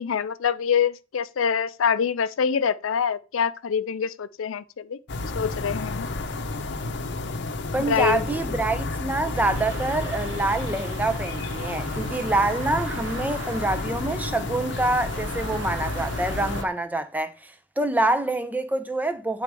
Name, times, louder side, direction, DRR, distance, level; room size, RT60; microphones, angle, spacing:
voice 1, 0.0-5.0 5.3-6.1 7.8-8.2, left 7 dB, 85° left, 0.5 m, -25 dB
sound 1, 5.1-16.6, left 3 dB, 60° left, 0.7 m, -31 dB
voice 2, 7.7-19.4, right 2 dB, 10° right, 0.5 m, -26 dB
sound 2, 9.3-16.7, right 6 dB, 85° right, 0.6 m, -40 dB
8.3 x 4.0 x 4.7 m
head